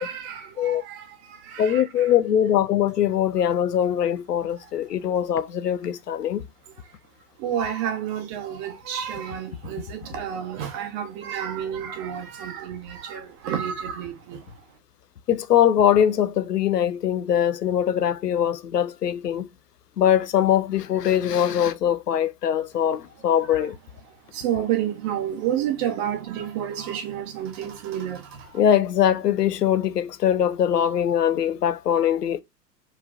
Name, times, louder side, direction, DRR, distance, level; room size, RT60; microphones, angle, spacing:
voice 1, 0.0-1.8 7.4-14.4 24.3-28.4, right 9 dB, 30° right, 1.2 m, -30 dB
voice 2, 1.6-6.4 15.3-19.5 20.0-23.8 28.5-32.4, left 10 dB, 75° left, 0.6 m, -22 dB
4.4 x 3.3 x 2.5 m
figure-of-eight pair, 100°, 49 cm